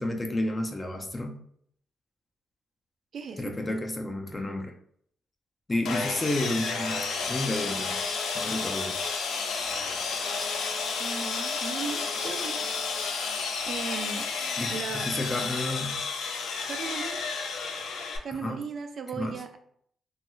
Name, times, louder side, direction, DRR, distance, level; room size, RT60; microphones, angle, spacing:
voice 1, 0.0-1.4 3.4-4.7 5.7-8.0 8.4-9.0 14.6-16.0 18.4-18.6 19.1-19.3, left 1 dB, 20° left, 4 dB, 0.4 m, -31 dB
voice 2, 3.1-3.5 11.0-12.6 13.7-14.3 14.7-15.1 16.7-17.2 18.2-19.6, right 5 dB, 55° right, 6 dB, 0.4 m, -36 dB
Sawing, 5.8-18.2, left 4 dB, 80° left, 0.5 m, -31 dB
3.0 x 2.3 x 3.0 m, 0.66 s
cardioid pair, 125°, 0 cm